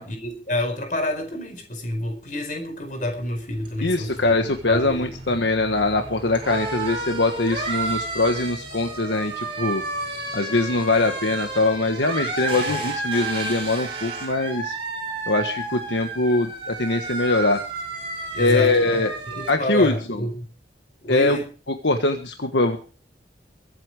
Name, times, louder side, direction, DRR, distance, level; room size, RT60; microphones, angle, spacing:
voice 1, 0.0-4.4 4.7-5.4 12.7-12.8 18.3-20.5 21.0-21.5, left 1 dB, 45° left, 4.9 m, -29 dB
sound 1, 3.1-19.5, right 2 dB, 30° right, 7.1 m, -32 dB
voice 2, 3.8-9.8 10.3-14.7 15.3-17.6 18.4-19.1 19.5-20.2 21.1-21.4 21.8-22.8, left 2 dB, 75° left, 1.5 m, -22 dB
23.0 x 8.8 x 4.9 m
head